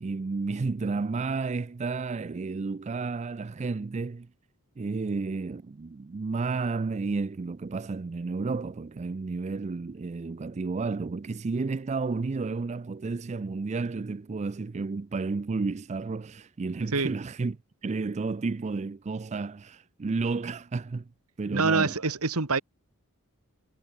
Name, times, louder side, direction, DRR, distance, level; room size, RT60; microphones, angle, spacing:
voice 1, 0.0-4.3 4.8-17.6 17.8-21.0 21.4-22.0, right 4 dB, 30° right, 0.4 m, -31 dB
voice 2, 21.5-22.6, right 4 dB, 80° right, 1.9 m, -25 dB
head